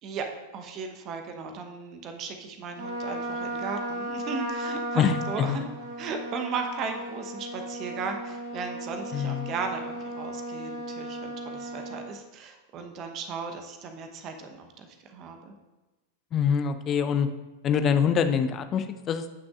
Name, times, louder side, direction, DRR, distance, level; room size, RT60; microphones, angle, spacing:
voice 1, 0.5-5.6 6.0-15.5, right 5 dB, 35° right, 5 dB, 1.0 m, -36 dB
Trumpet, 2.8-12.1, right 1 dB, 55° right, 1.9 m, -35 dB
voice 2, 5.0-5.6 9.1-9.5 16.3-17.3 17.6-19.3, left 7 dB, 30° left, 10 dB, 0.6 m, -25 dB
15.5 x 6.1 x 2.5 m, 1.1 s
figure-of-eight pair, 90°, 0 cm